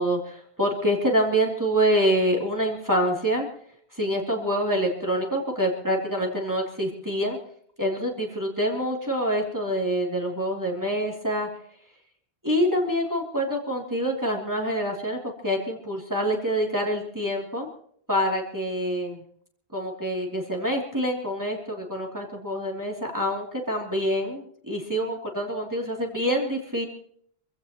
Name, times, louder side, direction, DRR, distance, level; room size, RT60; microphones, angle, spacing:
voice 1, 0.0-3.5 3.9-7.4 7.8-11.5 12.4-15.2 15.4-17.7 18.1-19.2 19.7-26.9, equal, 15° right, -1 dB, 3.1 m, -26 dB
26.0 x 15.5 x 3.0 m, 0.62 s
omnidirectional pair, 1.1 m